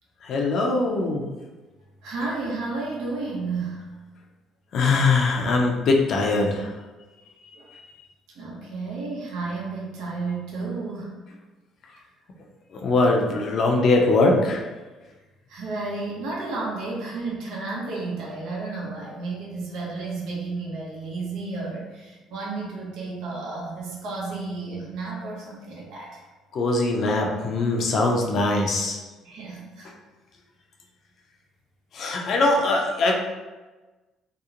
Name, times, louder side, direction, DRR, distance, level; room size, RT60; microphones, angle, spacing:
voice 1, 0.2-1.2 4.7-6.7 12.7-14.6 26.5-29.0 31.9-33.1, left 2 dB, 55° left, 1 dB, 0.5 m, -21 dB
voice 2, 2.0-3.9 7.5-7.7 8.3-11.1 11.9-12.0 15.5-26.2 29.2-29.9, right 3 dB, 75° right, -4 dB, 0.7 m, -32 dB
2.8 x 2.0 x 2.4 m, 1.2 s
cardioid pair, 95°, 0 cm